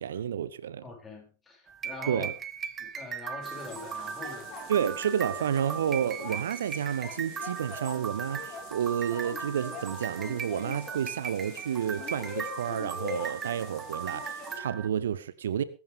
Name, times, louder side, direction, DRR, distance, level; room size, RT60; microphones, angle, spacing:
voice 1, 0.0-0.8 2.1-2.3 4.7-15.6, right 9 dB, 65° right, 17 dB, 0.8 m, -30 dB
voice 2, 0.8-2.3 2.8-4.5, left 2 dB, 15° left, 0 dB, 6.8 m, -43 dB
sound 1, 1.7-14.9, right 7 dB, 20° right, 1.5 m, -39 dB
sound 2, 3.4-14.6, left 6 dB, 35° left, 4.2 m, -43 dB
21.5 x 11.5 x 3.7 m, 0.34 s
figure-of-eight pair, 90°, 0 cm